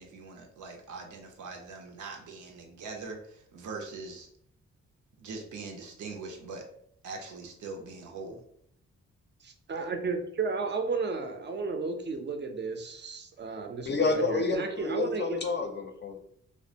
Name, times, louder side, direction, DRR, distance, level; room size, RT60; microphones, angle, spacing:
voice 1, 0.0-4.3 5.2-6.6 7.0-8.4, right 4 dB, 90° right, 1 dB, 0.6 m, -42 dB
voice 2, 9.4-15.4, right 4 dB, 40° right, 6 dB, 0.4 m, -33 dB
voice 3, 13.9-16.2, left 4 dB, 40° left, 4 dB, 0.4 m, -29 dB
2.3 x 2.1 x 2.7 m, 0.69 s
cardioid pair, 85°, 29 cm